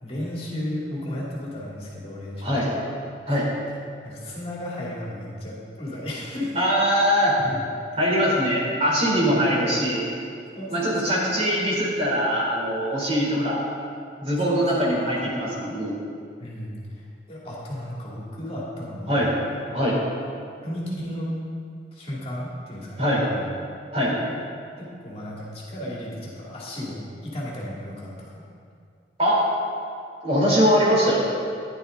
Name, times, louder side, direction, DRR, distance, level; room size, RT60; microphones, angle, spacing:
voice 1, 0.0-2.8 3.3-3.4 4.0-6.5 7.4-7.6 8.2-8.4 9.2-9.7 10.5-11.3 13.4-13.9 14.5-15.1 15.4-15.5 16.4-19.2 20.6-21.3 21.9-23.5 24.8-28.4, left 1 dB, 35° left, -5 dB, 2.3 m, -34 dB
voice 2, 6.5-7.4 8.0-10.1 10.7-13.6 14.2-16.0 19.1-19.3 19.7-20.0 23.0-23.2 23.9-24.2 29.2-29.4 30.2-31.2, equal, 35° right, -4 dB, 3.2 m, -22 dB
14.5 x 10.5 x 3.8 m, 2.3 s
head